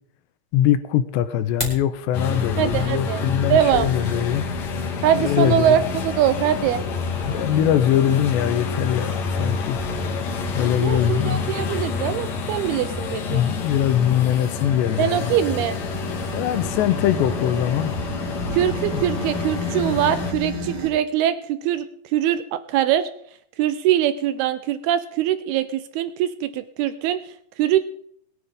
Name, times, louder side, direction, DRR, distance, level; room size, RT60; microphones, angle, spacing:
voice 1, 0.5-4.4 5.2-5.8 7.3-9.8 10.6-11.7 13.3-15.3 16.3-17.9 18.9-19.0, left 10 dB, 80° left, 12 dB, 3.0 m, -22 dB
sound 1, 1.3-1.9, left 1 dB, 10° left, 3.0 m, -30 dB
sound 2, 2.1-20.3, left 4 dB, 50° left, 2.5 m, -28 dB
voice 2, 2.6-3.2 3.5-3.9 5.0-6.8 10.8-13.4 15.0-15.8 18.5-23.1 23.6-27.2 27.6-27.8, right 11 dB, 80° right, 12 dB, 2.3 m, -22 dB
sound 3, 14.8-20.9, left 1 dB, 25° right, 2.7 m, -33 dB
21.5 x 9.9 x 3.7 m, 0.66 s
omnidirectional pair, 5.2 m